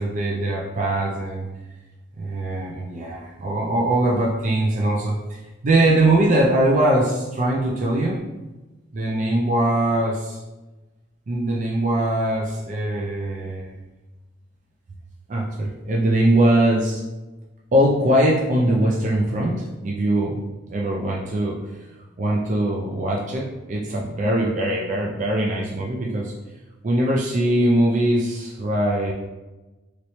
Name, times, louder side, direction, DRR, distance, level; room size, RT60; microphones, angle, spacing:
voice 1, 0.0-1.5 2.2-8.2 8.9-10.4 11.3-13.7 15.3-17.0 17.7-20.4 20.7-21.9 22.2-26.3 26.8-29.1, right 1 dB, 40° right, -2 dB, 0.4 m, -21 dB
3.1 x 3.0 x 2.8 m, 1.1 s
head